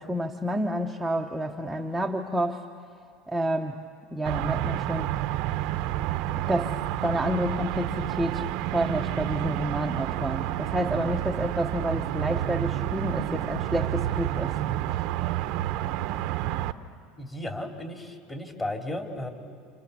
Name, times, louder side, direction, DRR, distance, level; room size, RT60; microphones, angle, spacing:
voice 1, 0.0-2.7 3.3-3.8 4.1-5.1 6.3-14.6, right 1 dB, 5° right, 0 dB, 1.2 m, -29 dB
sound 1, 4.3-16.7, right 13 dB, 65° right, 0.9 m, -29 dB
voice 2, 17.2-19.3, left 1 dB, 15° left, 4 dB, 3.3 m, -34 dB
29.5 x 28.0 x 7.0 m, 2.4 s
supercardioid pair, 120°, 0 cm